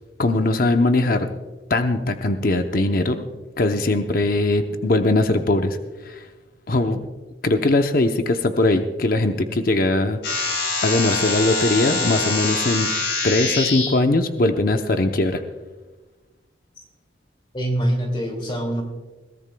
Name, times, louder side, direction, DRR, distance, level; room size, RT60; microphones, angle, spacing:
voice 1, 0.2-1.3 1.7-3.3 3.6-5.8 6.0-6.2 6.7-7.0 7.4-10.5 10.8-12.9 13.2-15.4, left 2 dB, 50° left, 6 dB, 0.7 m, -20 dB
sound 1, 10.2-13.9, left 3 dB, 70° left, 5.0 m, -24 dB
voice 2, 17.5-18.8, right 1 dB, 25° left, 2 dB, 2.3 m, -24 dB
21.5 x 16.0 x 2.2 m, 1.2 s
head